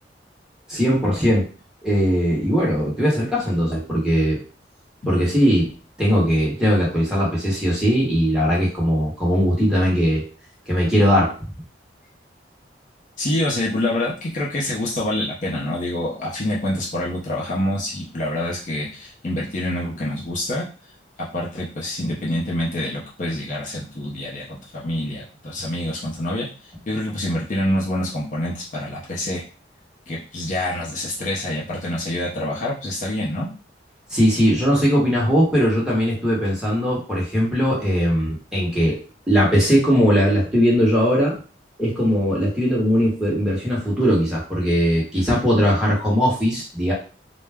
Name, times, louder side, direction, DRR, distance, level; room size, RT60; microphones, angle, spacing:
voice 1, 0.7-1.5 1.8-4.4 5.1-5.7 6.0-10.2 10.7-11.3 34.1-39.0 39.3-41.3 41.8-46.9, equal, 5° right, -6 dB, 1.0 m, -19 dB
voice 2, 13.2-20.7 21.3-26.5 26.9-29.5 30.1-33.5, left 1 dB, 45° left, -4 dB, 0.5 m, -26 dB
2.2 x 2.0 x 3.3 m, 0.37 s
head